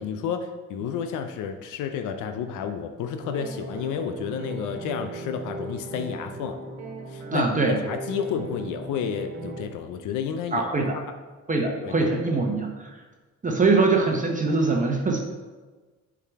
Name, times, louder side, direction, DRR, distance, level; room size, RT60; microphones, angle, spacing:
voice 1, 0.0-6.6 7.1-10.8 11.8-12.4, left 7 dB, 90° left, 7 dB, 0.5 m, -31 dB
sound 1, 3.2-9.7, right 2 dB, 60° right, 1.4 m, -37 dB
voice 2, 7.3-7.8 10.5-11.0 11.5-12.7 13.4-15.2, right 3 dB, 25° right, 1 dB, 0.9 m, -22 dB
6.6 x 4.8 x 3.6 m, 1.3 s
cardioid pair, 90°, 30 cm